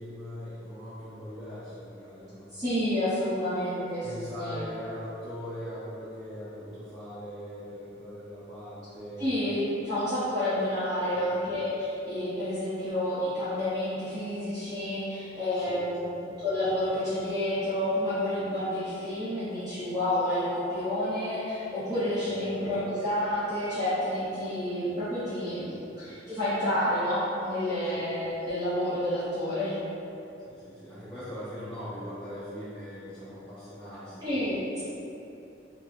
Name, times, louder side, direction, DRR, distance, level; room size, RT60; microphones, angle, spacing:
voice 1, 0.0-2.5 4.0-9.3 11.1-11.4 15.5-16.3 22.3-22.6 27.9-28.1 30.5-34.3, equal, 5° left, -15 dB, 0.8 m, -41 dB
voice 2, 2.5-4.6 9.2-16.0 16.4-29.8 34.2-34.8, left 1 dB, 25° right, -16 dB, 1.0 m, -29 dB
4.3 x 2.1 x 3.3 m, 2.9 s
head